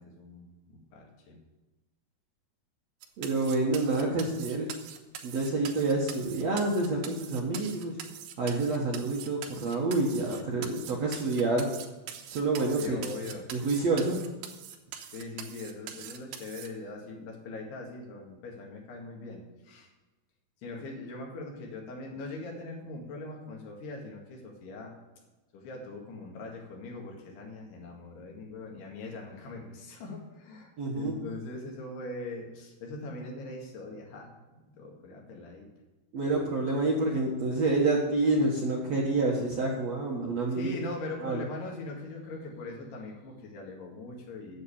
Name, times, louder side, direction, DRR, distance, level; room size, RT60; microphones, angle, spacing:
voice 1, 0.0-1.4 12.8-13.5 15.1-19.9 20.6-24.9 25.5-35.7 36.2-36.4 40.5-44.6, left 2 dB, 75° left, 0 dB, 4.0 m, -41 dB
sound 1, 3.0-16.7, right 9 dB, 80° right, 3.2 m, -43 dB
voice 2, 3.2-4.7 5.2-8.0 8.4-11.7 12.3-13.0 13.5-14.2 30.8-31.2 36.1-40.7 41.2-41.4, right 3 dB, 60° right, -2 dB, 1.8 m, -28 dB
9.8 x 7.7 x 8.6 m, 1.2 s
omnidirectional pair, 4.8 m